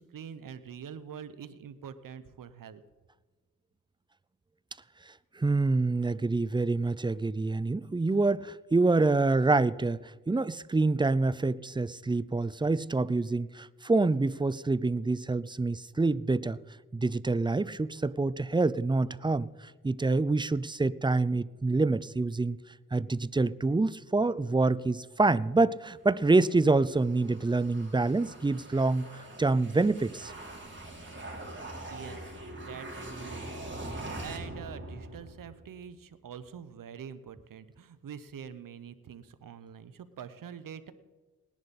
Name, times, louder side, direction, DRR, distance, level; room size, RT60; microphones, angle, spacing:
voice 1, 0.0-2.8 31.9-33.5 33.9-40.9, right 8 dB, 80° right, 0.9 m, -45 dB
voice 2, 5.4-16.6 16.9-22.6 22.9-30.3, right 3 dB, 15° right, 0.5 m, -26 dB
sound 1, 26.3-35.7, right 1 dB, 35° right, 3.7 m, -43 dB
19.0 x 10.5 x 4.2 m
cardioid pair, 50°, 33 cm